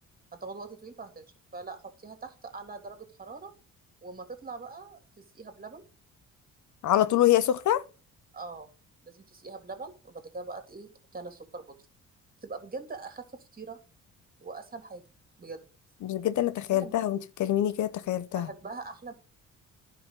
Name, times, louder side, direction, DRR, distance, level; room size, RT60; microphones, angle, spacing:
voice 1, 0.3-3.5 4.0-5.8 8.3-8.7 9.0-11.8 12.4-13.3 13.5-13.8 14.4-15.1 15.4-15.6 16.7-17.0 18.3-19.1, right 4 dB, 30° right, 3.1 m, -42 dB
voice 2, 6.8-7.8 16.0-18.5, left 12 dB, 75° left, 0.9 m, -25 dB
11.0 x 5.7 x 5.4 m
cardioid pair, 90°, 30 cm